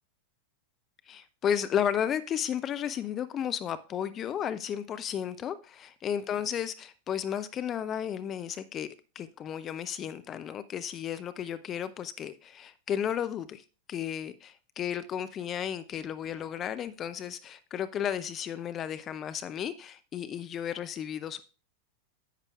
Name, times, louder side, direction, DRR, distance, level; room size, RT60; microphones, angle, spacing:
voice 1, 1.1-8.9 9.2-21.4, left 9 dB, 30° left, 0.4 m, -33 dB
10.5 x 8.1 x 2.3 m
figure-of-eight pair, 90°, 0 cm